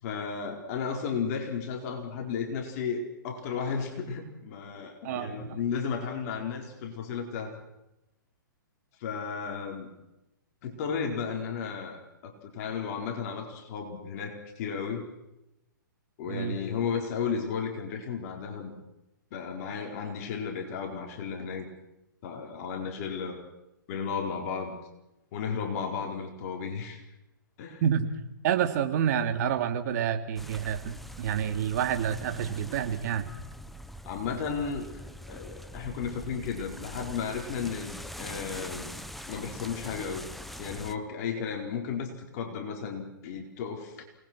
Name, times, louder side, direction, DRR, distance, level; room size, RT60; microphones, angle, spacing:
voice 1, 0.0-7.5 9.0-9.9 10.6-15.1 16.2-18.7 19.3-21.7 22.2-23.4 23.9-24.8 25.3-27.0 27.6-27.8 34.0-34.9 35.3-39.0 39.3-40.3 40.6-44.0, left 6 dB, 45° left, 2 dB, 4.5 m, -34 dB
voice 2, 5.0-5.6 16.3-16.6 27.8-28.1 28.4-33.3, right 8 dB, 50° right, 7 dB, 2.6 m, -28 dB
sound 1, 30.4-40.9, equal, ahead, 1.0 m, -43 dB
28.5 x 20.0 x 6.2 m, 0.93 s
hypercardioid pair, 130°, 11 cm